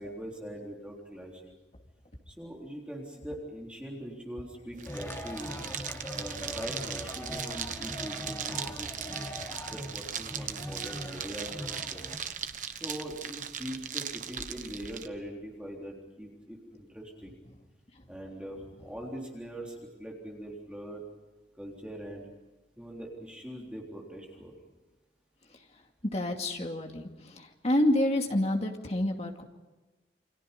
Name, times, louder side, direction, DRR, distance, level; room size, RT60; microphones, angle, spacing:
voice 1, 0.0-1.5 2.3-5.7 6.1-9.3 9.7-12.1 12.8-17.3 18.1-21.0 21.6-22.3 22.8-24.5, equal, 5° right, -2 dB, 3.7 m, -42 dB
sound 1, 4.7-15.1, right 8 dB, 45° right, 1.2 m, -39 dB
sound 2, 4.8-12.2, equal, 15° left, 3.6 m, -41 dB
voice 2, 26.1-29.4, left 1 dB, 40° left, 3 dB, 2.4 m, -28 dB
29.5 x 25.5 x 5.4 m, 1.1 s
head